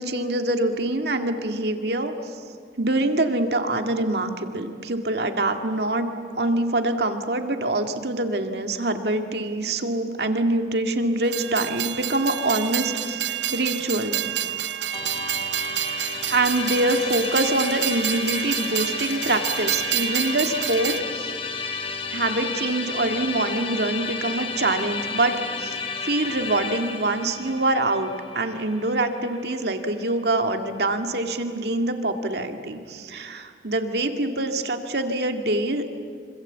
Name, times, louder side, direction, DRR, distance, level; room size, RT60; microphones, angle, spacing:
voice 1, 0.0-2.4 2.8-6.1 6.4-14.2 16.3-21.3 22.1-35.9, right 2 dB, 65° right, 5 dB, 2.1 m, -25 dB
Train, 11.2-21.0, right 12 dB, 85° right, 0.7 m, -28 dB
Musical instrument, 14.9-30.1, left 5 dB, 30° left, 2.1 m, -32 dB
26.5 x 26.0 x 8.2 m, 2.2 s
head